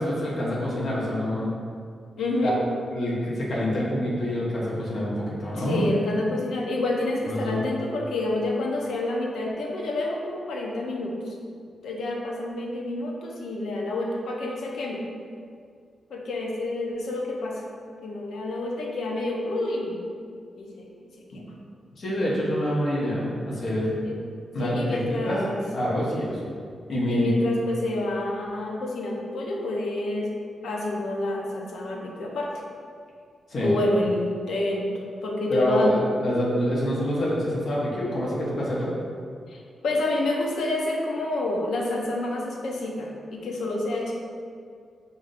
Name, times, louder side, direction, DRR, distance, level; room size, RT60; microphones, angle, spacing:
voice 1, 0.0-1.5 2.4-2.5 2.9-5.9 7.3-7.6 21.3-21.4 22.0-23.9 24.5-25.4 25.7-26.4 26.9-27.3 33.5-33.7 35.5-38.9, equal, 50° left, -6 dB, 1.0 m, -26 dB
voice 2, 2.2-2.6 5.5-11.4 11.8-15.0 16.1-17.6 18.0-20.1 20.6-21.1 21.3-21.4 24.0-24.2 24.6-25.6 27.1-30.3 30.6-32.5 33.6-34.9 35.2-36.0 39.5-44.1, left 2 dB, 80° left, -1 dB, 0.6 m, -28 dB
5.6 x 2.7 x 2.5 m, 2.2 s
wide cardioid pair, 170°, 0 cm